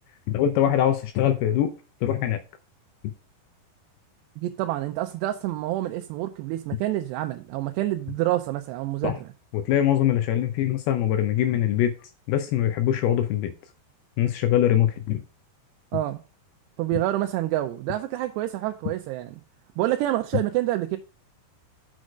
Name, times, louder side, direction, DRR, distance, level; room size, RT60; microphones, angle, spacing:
voice 1, 0.3-1.7 2.0-2.4 9.0-9.1 9.5-11.9 12.3-13.5 14.2-15.2, left 11 dB, 80° left, 2.4 m, -22 dB
voice 2, 4.4-9.3 15.9-16.2 16.8-19.4 19.8-21.0, right 15 dB, 80° right, 2.7 m, -27 dB
6.4 x 6.3 x 4.9 m
omnidirectional pair, 4.9 m